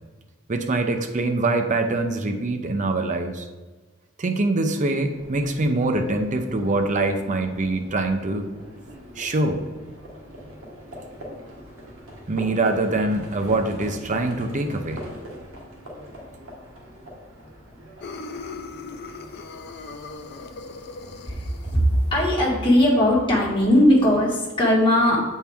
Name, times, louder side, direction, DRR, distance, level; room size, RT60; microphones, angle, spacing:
voice 1, 0.5-3.4 4.2-8.5 9.2-9.6 12.3-15.0, right 2 dB, 40° right, 6 dB, 0.6 m, -24 dB
Livestock farm animals working animals, 5.1-24.1, equal, 85° right, 1.4 m, -42 dB
sound 1, 18.0-22.3, left 4 dB, 55° left, 0.5 m, -39 dB
voice 2, 21.3-21.8 22.1-25.2, left 1 dB, 25° left, -5 dB, 1.8 m, -19 dB
7.2 x 4.4 x 3.5 m, 1.3 s
head